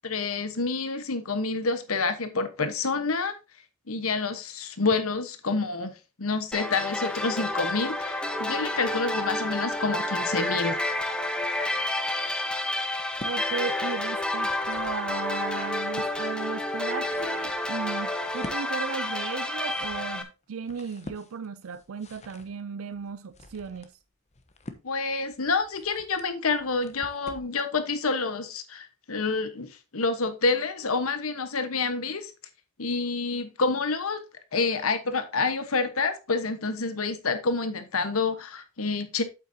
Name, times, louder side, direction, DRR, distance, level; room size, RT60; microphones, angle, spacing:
voice 1, 0.0-3.3 3.9-10.8 24.8-32.3 32.8-34.2 34.5-39.2, left 4 dB, 85° left, 1.2 m, -28 dB
sound 1, 6.5-20.2, left 1 dB, 5° left, 0.9 m, -30 dB
sound 2, 12.9-13.4 14.2-15.0 15.5-16.1 16.7-27.6, left 2 dB, 35° left, 1.0 m, -47 dB
voice 2, 13.2-23.9, right 6 dB, 75° right, 0.5 m, -36 dB
8.2 x 7.8 x 2.8 m
head